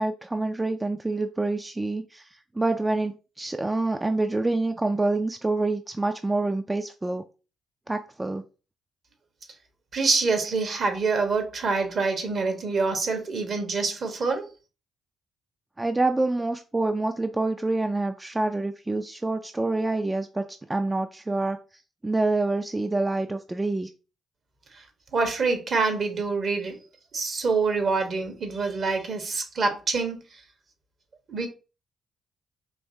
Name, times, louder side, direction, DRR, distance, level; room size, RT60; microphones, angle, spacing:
voice 1, 0.0-7.2 7.9-8.4 15.8-21.6 22.0-23.9, right 2 dB, 20° right, 0.4 m, -27 dB
voice 2, 9.9-14.4 25.1-26.7 27.1-30.2 31.3-31.5, right 4 dB, 55° right, 1.2 m, -26 dB
4.5 x 3.0 x 2.7 m
hypercardioid pair, 45°, 0 cm